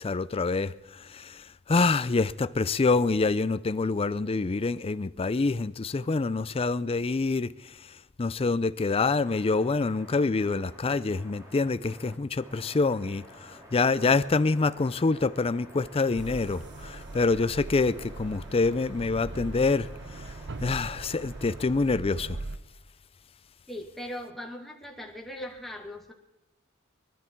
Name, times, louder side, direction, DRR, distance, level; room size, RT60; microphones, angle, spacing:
voice 1, 0.0-7.5 8.2-19.9 20.6-22.4, left 3 dB, 25° left, 0.4 m, -26 dB
sound 1, 9.2-21.7, equal, 15° right, 2.7 m, -51 dB
sound 2, 16.1-22.6, right 3 dB, 55° right, 0.8 m, -40 dB
voice 2, 23.7-26.1, left 1 dB, ahead, 2.1 m, -39 dB
23.5 x 12.0 x 4.6 m
head